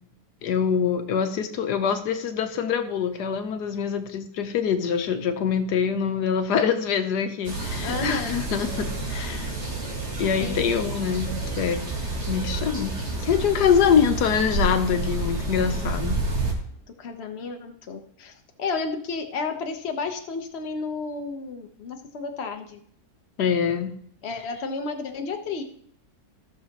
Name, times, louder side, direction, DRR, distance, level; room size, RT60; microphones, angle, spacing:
voice 1, 0.4-9.5 10.2-11.3 11.6-11.8 12.3-12.9 13.2-16.2 23.4-23.9, left 7 dB, 80° left, 8 dB, 1.5 m, -24 dB
sound 1, 7.4-16.5, right 2 dB, 45° right, 2.1 m, -29 dB
voice 2, 7.8-8.4 10.4-10.6 17.0-22.8 24.2-25.6, left 4 dB, 45° left, 5 dB, 1.2 m, -32 dB
15.0 x 6.6 x 3.0 m, 0.65 s
omnidirectional pair, 1.7 m